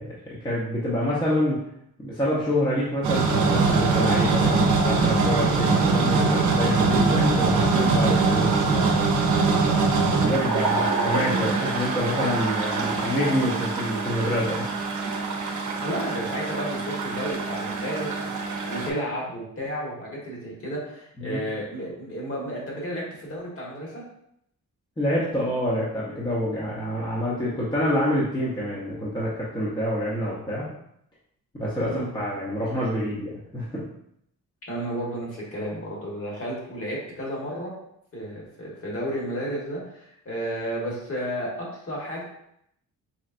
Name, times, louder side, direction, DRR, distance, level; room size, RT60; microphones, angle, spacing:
voice 1, 0.0-1.6 2.0-9.1 9.7-14.7 21.2-21.4 25.0-30.7 31.6-33.8, equal, 15° left, -7 dB, 0.8 m, -27 dB
sound 1, 3.0-18.9, right 4 dB, 55° right, 0.7 m, -23 dB
voice 2, 15.8-18.2 18.7-24.0 31.8-32.1 34.7-37.7 38.1-42.2, equal, 40° left, -4 dB, 1.5 m, -32 dB
4.2 x 3.2 x 2.5 m, 0.75 s
wide cardioid pair, 135°, 35 cm